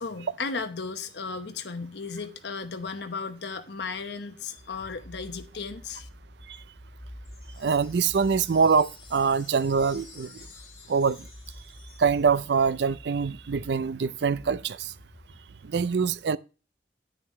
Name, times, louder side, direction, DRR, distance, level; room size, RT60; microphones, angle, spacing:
voice 1, 0.0-6.1, left 4 dB, 80° left, 1.0 m, -35 dB
sound 1, 4.6-15.5, equal, 15° left, 0.6 m, -48 dB
sound 2, 7.2-12.7, left 5 dB, 30° left, 2.7 m, -52 dB
voice 2, 7.6-10.5 10.9-11.3 12.0-14.9 15.6-16.4, right 5 dB, 75° right, 0.4 m, -24 dB
9.7 x 9.2 x 3.2 m
head